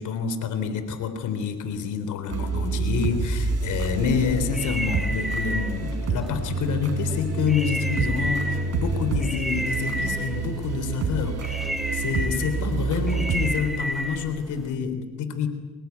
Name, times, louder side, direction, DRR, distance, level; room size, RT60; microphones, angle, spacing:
voice 1, 0.0-11.5 11.9-15.5, left 6 dB, 80° left, 9 dB, 3.6 m, -27 dB
sound 1, 2.3-13.5, right 4 dB, 55° right, 5.6 m, -28 dB
sound 2, 4.1-14.7, equal, ahead, 1.9 m, -33 dB
24.5 x 20.5 x 9.5 m, 1.3 s
cardioid pair, 90°, 30 cm